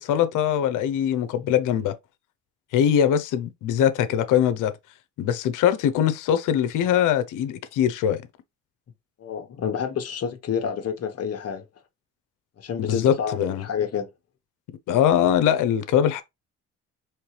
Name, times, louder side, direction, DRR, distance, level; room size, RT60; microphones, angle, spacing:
voice 1, 0.0-2.0 2.7-4.7 5.2-8.2 12.8-13.6 14.9-16.2, left 9 dB, 85° left, 0.8 m, -22 dB
voice 2, 9.2-11.6 12.6-14.1, left 7 dB, 55° left, 1.2 m, -29 dB
4.5 x 3.2 x 3.2 m
cardioid pair, 90°, 30 cm